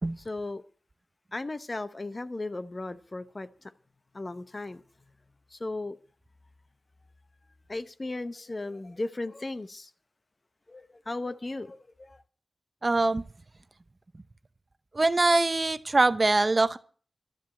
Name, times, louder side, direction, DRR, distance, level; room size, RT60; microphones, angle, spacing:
voice 1, 0.2-0.6 1.3-3.7 4.1-4.8 5.5-6.0 7.7-9.9 10.7-12.2, left 2 dB, 40° left, 0.8 m, -36 dB
voice 2, 12.8-13.2 14.9-16.8, right 2 dB, 40° right, 0.7 m, -23 dB
12.5 x 7.4 x 8.7 m
wide cardioid pair, 65°, 0 cm